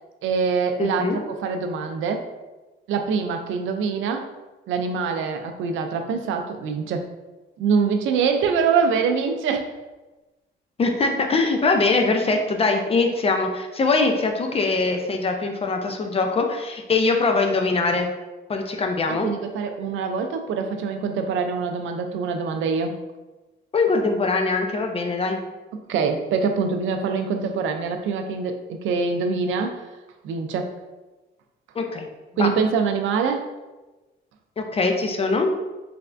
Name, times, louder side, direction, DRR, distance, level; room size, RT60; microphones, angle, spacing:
voice 1, 0.2-2.3 2.9-4.3 4.7-7.1 7.6-9.7 19.1-23.0 25.7-29.9 30.2-30.7 32.4-33.5, right 5 dB, 75° right, 5 dB, 0.4 m, -24 dB
voice 2, 0.8-1.2 10.8-18.1 18.5-19.3 23.7-25.4 31.8-32.1 32.4-32.5 34.6-35.5, left 3 dB, 30° left, 4 dB, 0.5 m, -22 dB
3.3 x 3.2 x 2.5 m, 1.1 s
cardioid pair, 90°, 20 cm